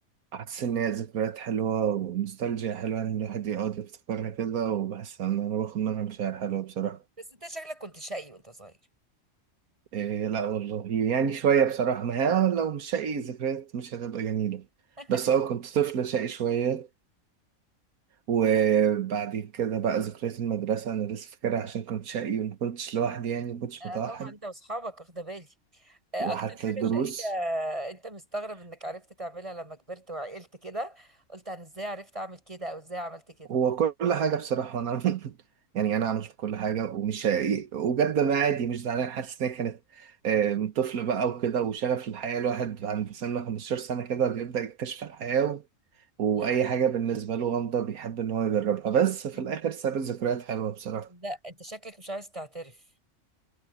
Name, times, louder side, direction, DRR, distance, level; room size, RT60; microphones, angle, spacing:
voice 1, 0.3-7.0 9.9-14.6 15.1-16.9 18.3-24.3 26.2-27.3 33.5-35.3 35.7-45.6 46.2-51.1, right 8 dB, 90° right, 1.6 m, -28 dB
voice 2, 7.4-8.7 15.0-15.2 23.8-25.5 25.8-33.6 46.4-46.5 51.1-52.8, right 1 dB, 20° right, 6.0 m, -37 dB
omnidirectional pair, 1.5 m